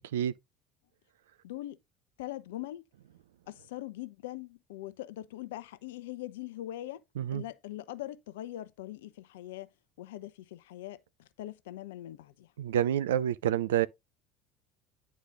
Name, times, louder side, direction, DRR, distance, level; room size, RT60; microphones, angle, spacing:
voice 1, 1.4-1.8 2.2-2.8 3.5-7.0 7.3-9.7 10.0-12.5, left 14 dB, 75° left, 0.7 m, -42 dB
voice 2, 12.6-13.9, right 10 dB, 75° right, 0.5 m, -28 dB
9.7 x 4.1 x 3.8 m
hypercardioid pair, 65°, 0 cm